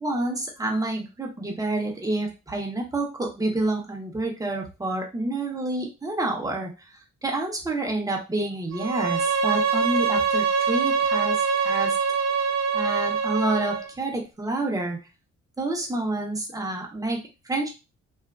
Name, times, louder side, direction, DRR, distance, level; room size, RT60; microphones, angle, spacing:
voice 1, 0.0-6.7 7.2-11.9 12.7-15.0 15.6-17.7, right 2 dB, 10° right, 0 dB, 0.8 m, -28 dB
Bowed string instrument, 8.7-13.9, right 5 dB, 65° right, 0.6 m, -24 dB
2.7 x 2.4 x 2.3 m, 0.28 s
cardioid pair, 90°, 30 cm